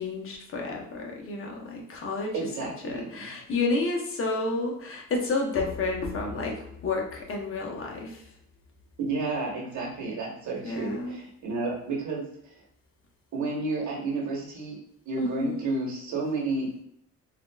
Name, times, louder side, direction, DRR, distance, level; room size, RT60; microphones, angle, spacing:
voice 1, 0.0-2.5 2.8-8.2 10.6-11.2 15.2-15.6, left 3 dB, 45° left, 0 dB, 0.8 m, -30 dB
voice 2, 2.3-3.3 9.0-12.2 13.3-14.8 15.1-16.8, right 3 dB, 70° right, -2 dB, 1.1 m, -31 dB
3.4 x 2.4 x 2.2 m, 0.71 s
cardioid pair, 90°, 30 cm